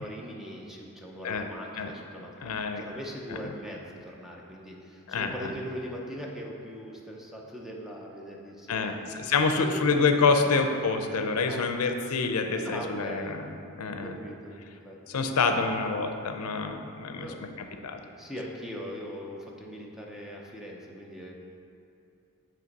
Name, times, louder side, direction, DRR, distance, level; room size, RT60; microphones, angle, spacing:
voice 1, 0.0-2.3 2.8-9.2 11.5-11.6 12.5-13.3 13.9-14.5 14.8-15.2 17.1-17.4 18.2-21.3, equal, ahead, -2 dB, 0.6 m, -40 dB
voice 2, 2.4-2.8 5.1-5.5 8.7-13.5 13.8-14.1 15.1-17.3 17.8-18.0, left 4 dB, 75° left, 6 dB, 0.5 m, -27 dB
8.6 x 3.1 x 5.2 m, 2.6 s
head